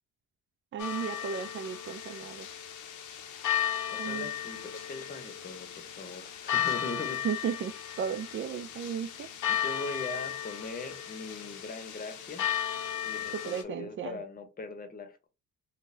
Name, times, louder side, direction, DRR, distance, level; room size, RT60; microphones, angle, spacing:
voice 1, 0.7-2.5 4.0-4.3 7.2-9.3 13.3-14.2, right 8 dB, 40° right, 0.4 m, -35 dB
sound 1, 0.8-13.6, left 10 dB, 80° left, 0.7 m, -35 dB
voice 2, 3.9-7.3 9.5-12.4 13.0-15.3, left 3 dB, 30° left, 0.8 m, -41 dB
3.8 x 2.2 x 2.6 m
cardioid pair, 90°, 30 cm